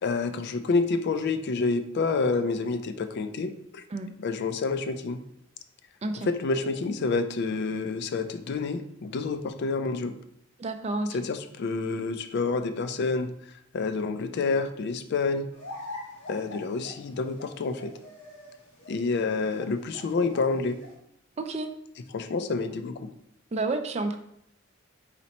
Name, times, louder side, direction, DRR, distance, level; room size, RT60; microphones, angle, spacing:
voice 1, 0.0-3.8 4.2-5.2 6.3-10.2 11.1-13.3 13.7-15.5 16.3-17.9 18.9-20.8 22.1-23.1, left 4 dB, 55° left, 9 dB, 0.4 m, -28 dB
voice 2, 10.6-11.2 21.4-21.7 23.5-24.2, right 2 dB, 30° right, 7 dB, 0.4 m, -30 dB
sound 1, 15.5-21.0, left 2 dB, 75° left, 1.4 m, -44 dB
4.2 x 4.2 x 2.9 m, 0.75 s
head